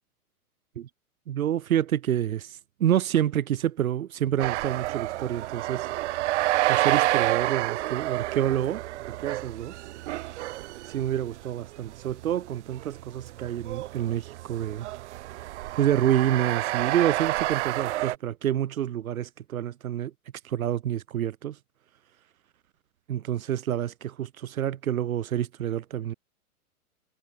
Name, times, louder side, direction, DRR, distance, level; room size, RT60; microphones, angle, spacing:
voice 1, 1.3-5.9 6.6-8.8 9.1-9.8 10.9-14.9 15.8-20.1 20.4-21.6 23.1-26.1, right 11 dB, 65° right, 7.6 m, -28 dB
sound 1, 4.4-18.2, right 16 dB, 50° right, 2.6 m, -29 dB
hypercardioid pair, 140°, 45 cm